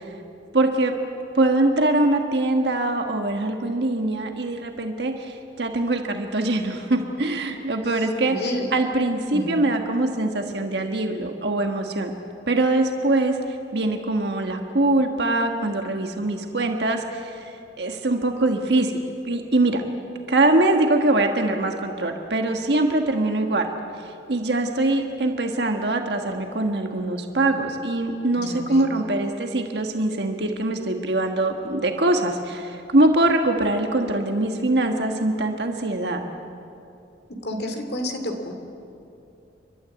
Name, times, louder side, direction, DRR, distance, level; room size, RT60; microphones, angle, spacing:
voice 1, 0.5-0.9 1.3-8.4 8.7-12.1 12.5-13.4 13.7-19.0 19.2-19.8 20.3-23.7 24.3-36.2, right 2 dB, 65° right, 4 dB, 1.4 m, -23 dB
voice 2, 8.3-8.7 9.3-9.7 28.4-29.0 37.4-38.5, equal, 55° left, 5 dB, 2.6 m, -30 dB
30.0 x 12.5 x 9.5 m, 2.7 s
head